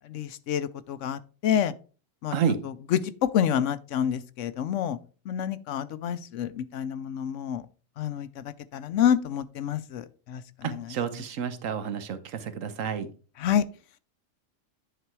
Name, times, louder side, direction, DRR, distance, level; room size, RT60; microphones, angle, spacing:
voice 1, 0.1-1.7 2.2-2.4 2.9-5.0 5.3-7.6 8.0-10.7 13.4-13.7, left 9 dB, 75° left, 0.9 m, -28 dB
voice 2, 10.6-13.1, right 7 dB, 85° right, 1.3 m, -30 dB
10.0 x 4.1 x 4.6 m
omnidirectional pair, 1.3 m